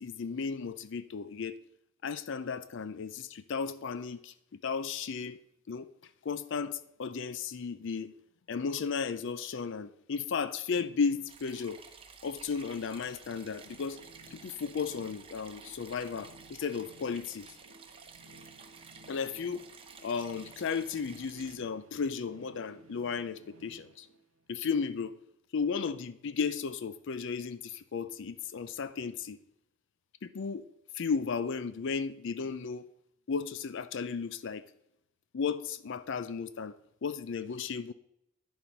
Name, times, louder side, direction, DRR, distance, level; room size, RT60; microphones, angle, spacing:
voice 1, 0.0-1.6 2.0-4.3 4.6-5.4 5.7-5.9 6.2-8.1 8.5-11.8 12.2-14.0 14.3-17.5 19.1-19.6 20.0-24.1 24.5-25.2 25.5-29.4 30.2-30.6 30.9-32.8 33.3-34.7 35.3-36.8 37.0-37.9, left 5 dB, 55° left, 0.4 m, -34 dB
sound 1, 11.3-21.6, right 5 dB, 25° right, 0.9 m, -53 dB
sound 2, 12.8-24.8, right 1 dB, 75° right, 0.9 m, -57 dB
10.0 x 7.2 x 5.3 m
head